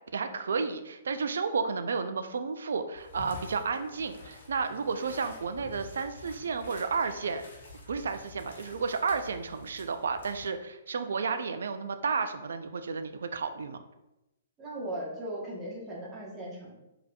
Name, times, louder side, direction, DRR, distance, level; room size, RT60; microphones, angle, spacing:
voice 1, 0.1-7.4 7.9-13.8, right 5 dB, 75° right, 9 dB, 0.3 m, -32 dB
sound 1, 2.9-10.5, left 3 dB, 65° left, 1.1 m, -49 dB
voice 2, 14.6-16.7, right 1 dB, 20° right, -4 dB, 1.0 m, -38 dB
3.9 x 2.8 x 2.3 m, 0.93 s
hypercardioid pair, 135°, 0 cm